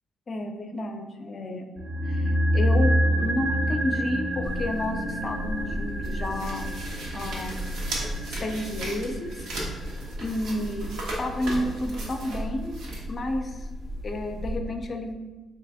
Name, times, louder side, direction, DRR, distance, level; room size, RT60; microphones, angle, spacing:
voice 1, 0.3-1.7 2.1-6.7 7.1-7.6 8.3-9.5 10.2-10.9 11.2-12.8 13.1-13.7 14.0-15.2, left 1 dB, 40° left, 5 dB, 0.4 m, -31 dB
sound 1, 1.8-12.0 12.3-12.4, equal, 50° right, 0.6 m, -28 dB
sound 2, 4.4-14.6, right 1 dB, 80° right, 0.9 m, -34 dB
3.3 x 2.9 x 3.4 m, 1.3 s
cardioid pair, 90°, 0 cm